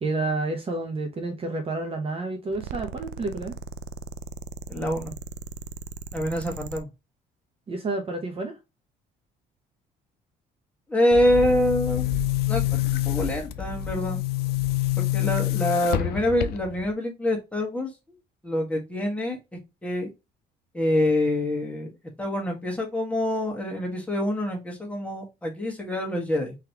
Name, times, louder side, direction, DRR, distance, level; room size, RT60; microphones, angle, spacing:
voice 1, 0.0-3.6 7.7-8.6, right 2 dB, 35° right, 0.9 m, -29 dB
sound 1, 2.5-6.8, right 5 dB, 85° right, 0.5 m, -38 dB
voice 2, 4.7-5.1 6.1-6.9 10.9-12.2 12.5-14.2 15.0-17.9 18.4-19.4 19.8-20.1 20.7-21.9 22.2-26.6, left 1 dB, 10° left, 1.5 m, -26 dB
Boom, 11.1-16.9, left 13 dB, 70° left, 0.5 m, -27 dB
3.9 x 3.2 x 2.9 m
cardioid pair, 110°, 17 cm